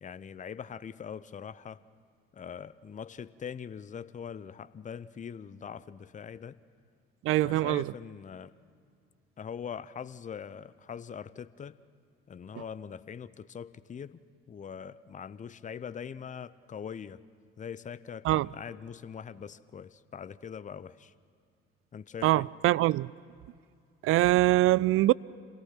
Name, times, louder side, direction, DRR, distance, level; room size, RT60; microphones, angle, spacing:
voice 1, 0.0-1.8 2.3-6.6 7.4-8.5 9.4-11.8 12.3-14.2 14.5-17.2 17.6-21.1 21.9-22.5, left 7 dB, 25° left, 0.6 m, -42 dB
voice 2, 7.2-7.9 18.2-18.5 22.2-23.1 24.0-25.1, right 16 dB, 45° right, 0.4 m, -23 dB
26.5 x 17.0 x 5.8 m
hypercardioid pair, 55°, 31 cm